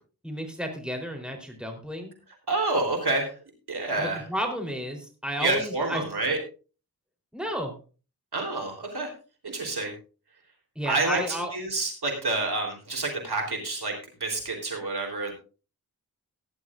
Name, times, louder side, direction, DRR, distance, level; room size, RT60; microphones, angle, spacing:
voice 1, 0.2-2.1 4.0-6.0 7.3-7.8 10.8-11.5, equal, ahead, 3 dB, 3.7 m, -32 dB
voice 2, 2.5-3.3 3.7-4.2 5.4-6.4 8.3-9.1 9.4-9.9 10.9-13.9 14.2-15.3, right 2 dB, 85° right, 1 dB, 3.8 m, -28 dB
17.5 x 10.5 x 2.5 m, 0.35 s
wide cardioid pair, 60°, 38 cm